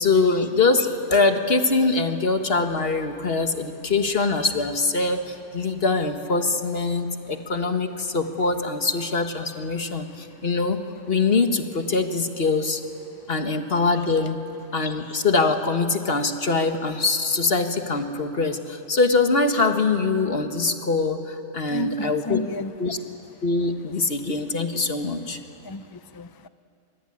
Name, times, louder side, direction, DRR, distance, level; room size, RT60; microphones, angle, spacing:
voice 1, 0.0-10.8 11.1-12.8 13.3-14.4 14.7-22.4 22.8-23.0 23.4-25.4, left 3 dB, 50° left, 6 dB, 1.8 m, -23 dB
voice 2, 21.7-22.7 24.3-24.4 25.2-25.4 25.6-26.5, left 3 dB, 35° left, 12 dB, 0.4 m, -33 dB
24.0 x 24.0 x 9.8 m, 2.6 s
omnidirectional pair, 1.3 m